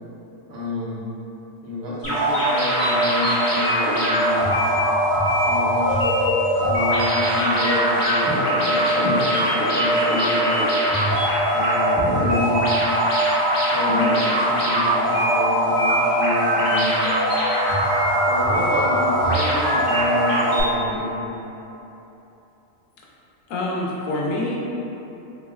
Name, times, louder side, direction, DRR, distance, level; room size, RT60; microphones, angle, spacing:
voice 1, 0.5-1.0 1.6-4.5 5.4-6.1 6.6-8.2 8.6-10.6 11.5-12.8 13.7-17.0 18.3-21.2, left 2 dB, 60° right, -8 dB, 0.9 m, -29 dB
sound 1, 2.0-20.6, equal, 35° left, 1.1 m, -20 dB
voice 2, 23.5-24.6, left 1 dB, 90° left, -3 dB, 1.0 m, -25 dB
3.7 x 2.3 x 3.0 m, 3.0 s
omnidirectional pair, 1.3 m